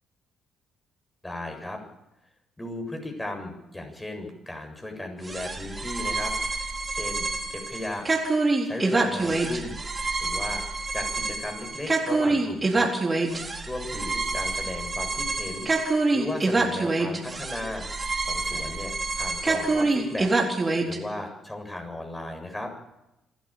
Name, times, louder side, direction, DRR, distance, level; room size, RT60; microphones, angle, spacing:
voice 1, 1.2-1.8 2.6-6.3 6.9-8.1 8.6-9.8 10.2-10.6 10.9-12.9 13.7-15.7 16.1-17.9 18.2-20.3 20.8-22.7, left 1 dB, 15° left, 3 dB, 7.3 m, -36 dB
sound 1, 5.2-21.0, right 3 dB, 30° right, 4.3 m, -26 dB
26.5 x 12.0 x 8.9 m, 0.91 s
hypercardioid pair, 50°, 0 cm